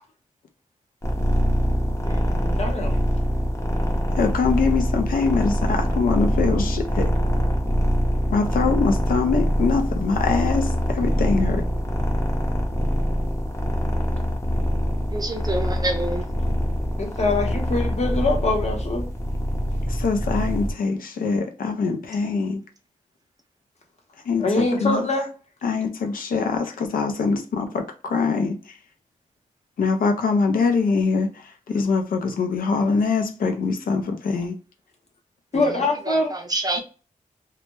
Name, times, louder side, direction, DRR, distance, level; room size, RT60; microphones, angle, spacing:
sound 1, 1.0-20.7, equal, 20° left, 0.6 m, -24 dB
voice 1, 2.4-3.0 17.0-19.0 24.4-25.3 35.5-36.4, left 2 dB, 50° left, 0.8 m, -23 dB
voice 2, 4.2-7.1 8.3-11.7 19.8-22.6 24.3-25.0 25.6-28.7 29.8-34.6, left 4 dB, 85° left, 0.4 m, -23 dB
voice 3, 15.1-16.3 35.5-35.6 36.1-36.8, right 2 dB, 25° right, 0.5 m, -27 dB
2.2 x 2.0 x 2.8 m
wide cardioid pair, 90°, 14 cm